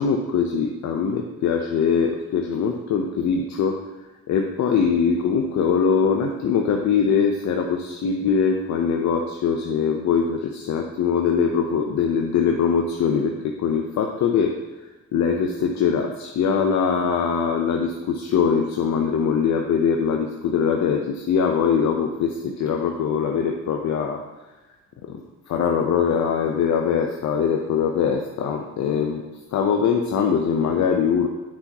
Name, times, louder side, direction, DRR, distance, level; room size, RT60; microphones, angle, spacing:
voice 1, 0.0-3.8 4.3-14.6 15.1-24.2 25.0-25.2 25.5-29.2 29.5-31.3, left 6 dB, 65° left, 2 dB, 0.7 m, -22 dB
8.6 x 5.8 x 2.9 m, 1.1 s
cardioid pair, 90°, 30 cm